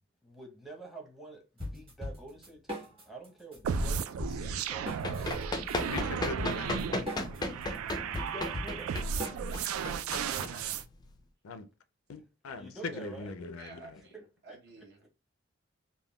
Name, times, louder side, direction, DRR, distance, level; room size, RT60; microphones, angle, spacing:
voice 1, 0.2-5.3 8.0-9.0 12.6-13.3 14.1-15.1, right 3 dB, ahead, 0.7 m, -48 dB
sound 1, 1.6-3.3 3.5-10.3, left 1 dB, 25° right, 1.3 m, -40 dB
sound 2, 3.6-10.8, right 6 dB, 85° right, 0.3 m, -35 dB
Run, 4.7-11.1, left 2 dB, 20° left, 0.3 m, -36 dB
voice 2, 5.9-7.0 11.4-11.7 12.1-13.9, left 4 dB, 85° left, 0.4 m, -41 dB
voice 3, 10.3-10.6 13.6-15.1, right 3 dB, 50° right, 0.8 m, -52 dB
3.5 x 2.2 x 2.2 m
head